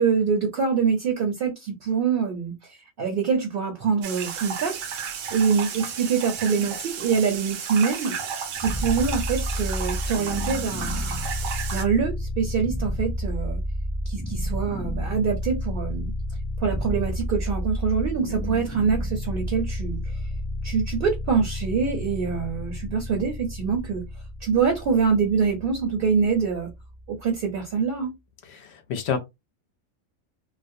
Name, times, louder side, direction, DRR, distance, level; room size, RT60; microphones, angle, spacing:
voice 1, 0.0-13.6 14.1-16.1 16.6-20.2 20.6-24.1 24.4-26.7 27.1-28.2, right 6 dB, 55° right, 0.7 m, -25 dB
sound 1, 4.0-11.8, right 7 dB, 80° right, 0.9 m, -33 dB
sound 2, 8.6-27.6, left 1 dB, ahead, 0.6 m, -31 dB
voice 2, 28.5-29.2, left 6 dB, 65° left, 0.8 m, -28 dB
2.4 x 2.1 x 2.5 m
omnidirectional pair, 1.3 m